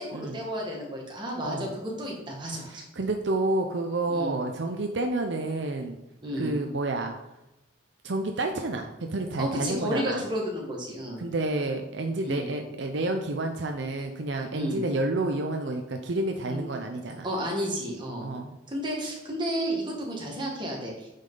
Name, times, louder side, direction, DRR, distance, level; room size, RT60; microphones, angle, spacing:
voice 1, 0.0-2.8 4.1-4.3 6.2-6.5 9.4-11.2 12.2-12.5 14.5-14.8 16.5-16.6 17.2-18.3 18.7-21.1, equal, 25° right, -2 dB, 1.8 m, -32 dB
voice 2, 2.7-6.0 6.4-7.2 8.0-10.2 11.2-17.3 18.2-18.6, right 2 dB, 65° right, 4 dB, 0.6 m, -29 dB
8.7 x 5.5 x 3.9 m, 0.94 s
head